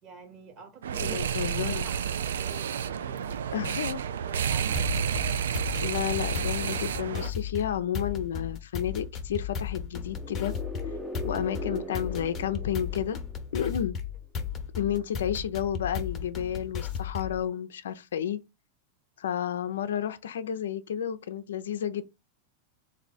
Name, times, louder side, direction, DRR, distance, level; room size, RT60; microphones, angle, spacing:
voice 1, 0.0-3.7 4.1-4.8, right 5 dB, 40° right, 1.5 m, -47 dB
sound 1, 0.8-7.3, right 8 dB, 90° right, 0.3 m, -30 dB
voice 2, 1.0-1.9 3.5-4.0 5.8-10.5 11.2-13.2 13.5-13.9 14.8-18.4 19.2-22.0, left 9 dB, 85° left, 0.4 m, -31 dB
sound 2, 4.8-17.4, left 7 dB, 25° left, 0.9 m, -35 dB
sound 3, 10.0-13.8, equal, ahead, 0.7 m, -40 dB
3.4 x 2.6 x 4.0 m
hypercardioid pair, 120°, 0 cm